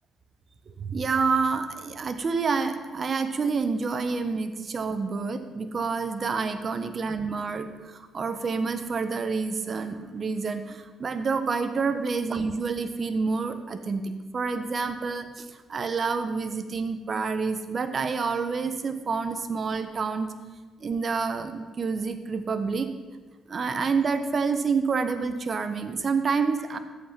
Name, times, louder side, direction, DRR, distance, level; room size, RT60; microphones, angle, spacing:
voice 1, 0.8-20.3 20.8-22.9 23.5-26.8, right 4 dB, 45° right, 9 dB, 1.0 m, -28 dB
13.5 x 8.2 x 5.8 m, 1.3 s
cardioid pair, 90°, 0 cm